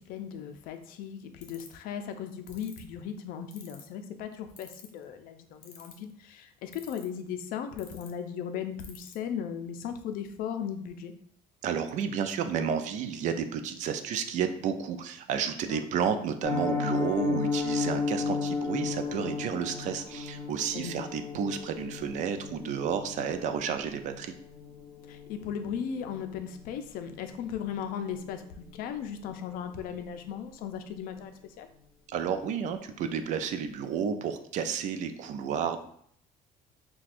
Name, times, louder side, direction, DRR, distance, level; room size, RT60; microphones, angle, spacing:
voice 1, 0.1-11.1 15.7-15.9 20.7-21.1 25.1-31.7, left 8 dB, 65° left, 7 dB, 0.5 m, -37 dB
sound 1, 1.4-1.8 2.5-2.8 3.5-3.9 4.6-5.0 5.6-6.1 6.7-7.2 7.8-8.1 8.8-9.1, left 7 dB, 50° left, 0.8 m, -49 dB
voice 2, 11.6-24.3 32.1-35.8, right 7 dB, 50° right, 8 dB, 0.4 m, -31 dB
Piano, 16.4-27.3 27.6-27.8 28.1-28.3 28.6-28.9 29.2-29.3, left 4 dB, ahead, 1.3 m, -34 dB
5.7 x 2.3 x 2.5 m, 0.64 s
cardioid pair, 145°, 16 cm